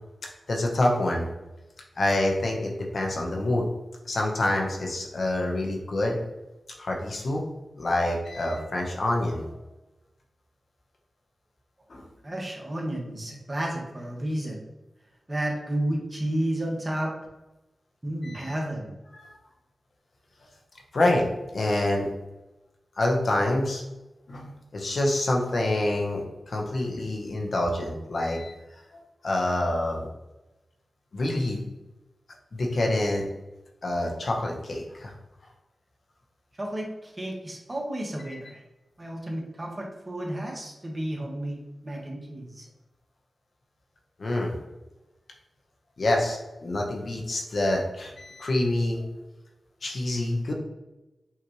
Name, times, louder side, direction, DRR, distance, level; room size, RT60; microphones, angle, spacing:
voice 1, 0.5-1.3 2.0-3.7 4.0-6.2 6.8-7.4 7.8-9.5 11.9-12.0 18.2-18.5 19.1-19.4 20.9-21.3 21.5-22.1 23.0-23.8 24.3-28.5 29.2-30.1 31.1-31.6 32.5-33.3 33.8-35.1 38.3-38.4 44.2-44.5 46.0-49.1 49.8-50.5, left 1 dB, 60° left, 0 dB, 0.9 m, -26 dB
voice 2, 12.2-14.6 15.3-17.1 18.0-18.9 36.6-38.6 39.0-42.7, right 1 dB, 30° right, -1 dB, 1.1 m, -32 dB
5.7 x 2.4 x 3.0 m, 1.0 s
cardioid pair, 60°, 0 cm